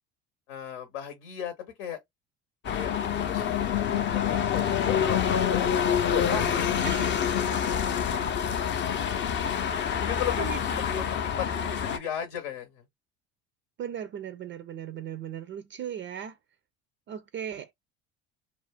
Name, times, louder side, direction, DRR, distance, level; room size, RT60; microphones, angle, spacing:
voice 1, 0.5-2.0 2.7-5.7 6.0-6.9 9.7-12.8, left 9 dB, 80° left, 0.8 m, -36 dB
sound 1, 2.6-12.0, left 8 dB, 35° left, 0.5 m, -27 dB
voice 2, 10.4-10.8 13.8-16.4 17.1-17.7, right 9 dB, 35° right, 0.4 m, -37 dB
2.4 x 2.1 x 3.3 m
hypercardioid pair, 75°, 34 cm